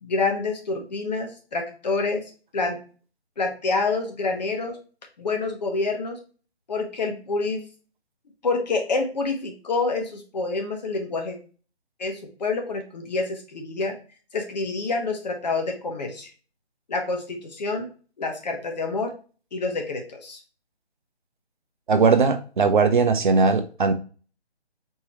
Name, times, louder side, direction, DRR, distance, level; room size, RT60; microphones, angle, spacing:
voice 1, 0.0-2.2 2.5-2.8 3.4-4.8 5.2-6.2 6.7-7.7 8.4-11.4 12.0-13.9 14.3-16.3 16.9-17.9 18.2-19.1 19.5-20.4, left 3 dB, 40° left, 3 dB, 1.2 m, -27 dB
voice 2, 21.9-23.9, right 4 dB, 45° right, 7 dB, 0.7 m, -19 dB
4.5 x 3.1 x 3.0 m, 0.37 s
figure-of-eight pair, 160°, 33 cm